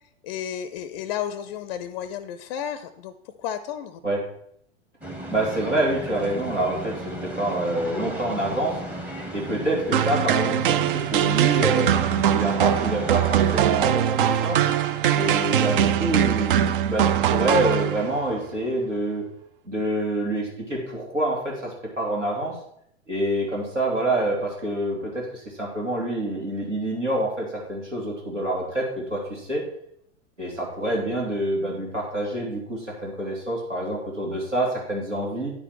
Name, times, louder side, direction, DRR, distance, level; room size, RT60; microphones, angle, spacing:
voice 1, 0.2-4.0, left 9 dB, 40° left, 12 dB, 0.5 m, -32 dB
sound 1, 5.0-13.7, right 1 dB, 5° right, 0.9 m, -35 dB
voice 2, 5.3-8.8 9.3-11.9 12.3-14.6 15.1-19.2 19.6-22.6 23.1-29.6 30.4-35.5, right 1 dB, 85° right, -2 dB, 2.4 m, -27 dB
sound 2, 9.9-18.3, right 10 dB, 45° right, 0.5 m, -22 dB
9.7 x 5.0 x 4.5 m, 0.70 s
figure-of-eight pair, 95°, 36 cm